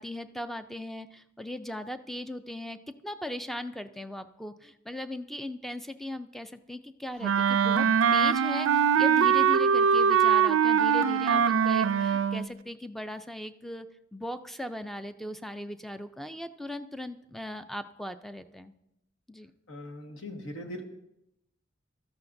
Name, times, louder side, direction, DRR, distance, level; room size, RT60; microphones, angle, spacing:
voice 1, 0.0-7.9 8.1-18.7 19.3-19.5, left 1 dB, ahead, 10 dB, 0.4 m, -38 dB
Wind instrument woodwind instrument, 7.2-12.5, right 7 dB, 80° right, 0.4 m, -22 dB
voice 2, 19.7-20.8, left 1 dB, 70° left, 4 dB, 1.5 m, -40 dB
15.5 x 13.0 x 2.6 m, 0.86 s
head